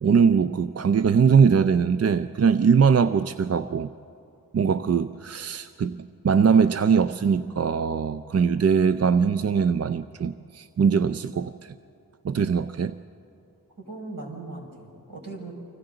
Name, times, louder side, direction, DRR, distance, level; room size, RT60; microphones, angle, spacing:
voice 1, 0.0-3.9 4.5-11.7 12.2-13.0, right 6 dB, 45° right, 12 dB, 0.4 m, -21 dB
voice 2, 13.8-15.5, right 2 dB, 65° right, -2 dB, 5.5 m, -38 dB
30.0 x 25.0 x 3.9 m, 2.6 s
wide cardioid pair, 80°, 36 cm